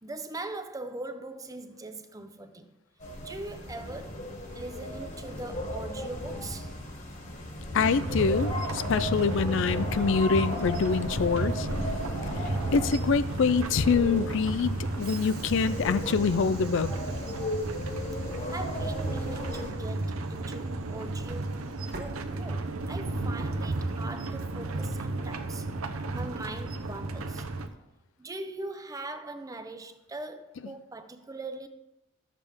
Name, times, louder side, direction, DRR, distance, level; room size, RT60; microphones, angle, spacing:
voice 1, 0.0-2.7 3.2-6.7 18.5-25.7 26.1-27.5 28.2-31.7, right 2 dB, 15° right, 0.6 m, -41 dB
sound 1, 3.0-19.7, left 1 dB, 35° left, 1.6 m, -36 dB
voice 2, 7.7-11.7 12.4-16.9, left 5 dB, 60° left, 0.4 m, -25 dB
sound 2, 7.7-27.7, right 2 dB, 85° right, 0.8 m, -34 dB
Train / Sliding door, 15.0-23.0, right 3 dB, 50° right, 1.2 m, -50 dB
12.0 x 7.5 x 3.5 m
head